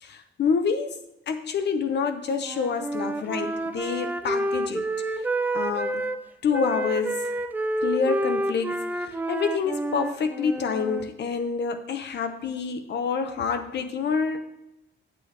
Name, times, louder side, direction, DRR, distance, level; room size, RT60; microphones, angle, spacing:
voice 1, 0.0-1.0 1.3-4.9 5.5-6.0 6.4-7.4 7.8-14.4, left 5 dB, 60° left, 8 dB, 0.7 m, -27 dB
Wind instrument woodwind instrument, 2.4-6.2 6.5-11.0, right 1 dB, 10° right, 0.4 m, -29 dB
8.4 x 7.8 x 3.3 m, 0.87 s
wide cardioid pair, 145°, 20 cm